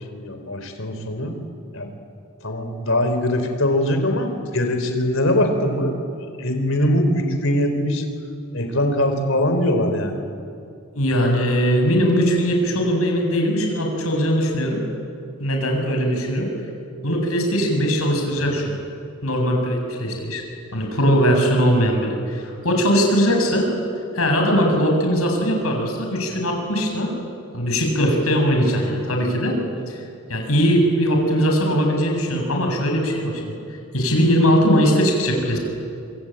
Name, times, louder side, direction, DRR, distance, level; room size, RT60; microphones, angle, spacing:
voice 1, 0.0-1.3 1.7-1.9 2.4-6.0 6.4-8.0 8.5-10.2, left 1 dB, 70° left, 6 dB, 4.1 m, -22 dB
voice 2, 10.9-14.8 15.4-16.5 17.0-18.7 19.2-20.4 20.7-23.7 24.1-27.1 27.5-29.6 29.9-30.0 30.3-33.5 33.9-35.6, equal, 90° left, 2 dB, 6.8 m, -20 dB
26.5 x 25.0 x 9.1 m, 2.4 s
head